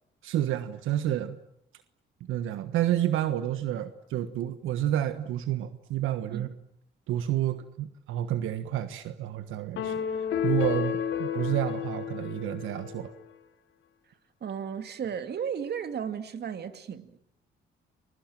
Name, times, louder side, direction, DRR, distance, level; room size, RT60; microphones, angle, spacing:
voice 1, 0.2-1.4 2.3-6.5 7.1-13.1, right 12 dB, 90° right, 1.4 m, -30 dB
sound 1, 9.7-13.2, left 9 dB, 75° left, 3.7 m, -31 dB
voice 2, 14.4-17.2, right 7 dB, 55° right, 2.6 m, -34 dB
29.0 x 22.5 x 9.0 m
cardioid pair, 90°, 20 cm